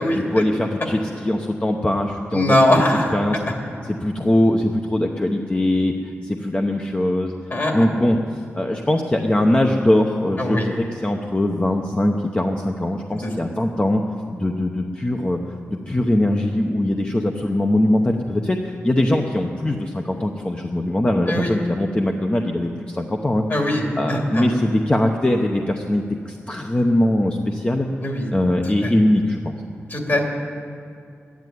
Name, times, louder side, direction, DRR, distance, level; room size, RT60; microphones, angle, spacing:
voice 1, 0.1-2.6 3.1-3.4 4.0-7.3 7.7-14.0 14.3-15.4 15.7-23.4 24.0-27.9 28.3-29.5, left 1 dB, 25° left, 2 dB, 0.8 m, -21 dB
voice 2, 2.3-3.1 7.5-7.9 10.4-10.7 13.2-13.3 21.3-21.5 23.5-24.5 28.0-28.3 28.8-28.9 29.9-30.2, left 1 dB, 45° left, 1 dB, 2.7 m, -20 dB
12.0 x 10.5 x 9.4 m, 2.4 s
wide cardioid pair, 85°, 5 cm